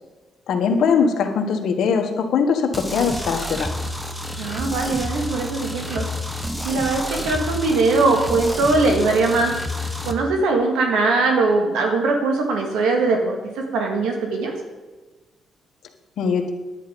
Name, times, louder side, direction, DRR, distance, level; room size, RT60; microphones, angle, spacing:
voice 1, 0.5-3.7 16.2-16.5, left 6 dB, 70° left, 4 dB, 1.5 m, -21 dB
sound 1, 2.7-10.1, left 1 dB, 5° right, 1.2 m, -29 dB
voice 2, 4.4-6.1 6.6-9.5 10.0-14.5, right 3 dB, 90° right, 2 dB, 1.9 m, -21 dB
10.0 x 9.6 x 5.3 m, 1.2 s
cardioid pair, 90°, 0 cm